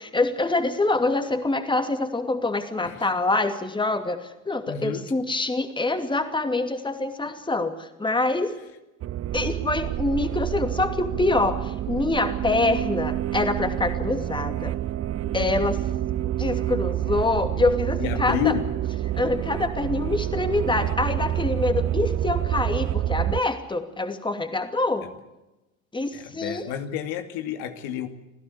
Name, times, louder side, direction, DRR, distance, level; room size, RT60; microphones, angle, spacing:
voice 1, 0.0-8.5 9.3-14.7 15.3-15.8 16.4-18.5 19.1-25.1 25.9-26.7, left 2 dB, 10° left, 7 dB, 2.7 m, -25 dB
voice 2, 4.7-5.1 18.0-18.7 26.1-28.1, left 10 dB, 60° left, 7 dB, 2.4 m, -30 dB
sound 1, 9.0-23.4, right 12 dB, 35° right, 0.8 m, -28 dB
26.5 x 16.0 x 8.3 m, 1.0 s
hypercardioid pair, 70°, 41 cm